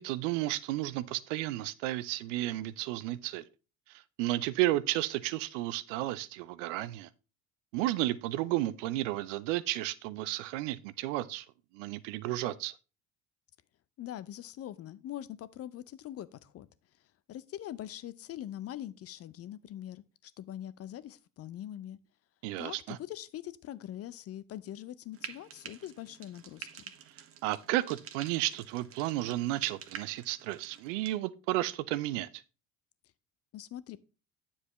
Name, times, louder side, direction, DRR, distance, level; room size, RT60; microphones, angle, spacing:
voice 1, 0.0-3.4 4.2-7.1 7.7-11.4 11.7-12.7 22.4-23.0 27.4-32.3, right 16 dB, 60° right, 0.6 m, -32 dB
voice 2, 14.0-16.7 17.3-22.0 22.6-26.8 33.5-34.0, left 12 dB, 35° left, 0.6 m, -43 dB
Frying (food), 25.1-31.2, right 8 dB, 35° right, 1.0 m, -48 dB
9.4 x 7.2 x 3.0 m
figure-of-eight pair, 60°, 42 cm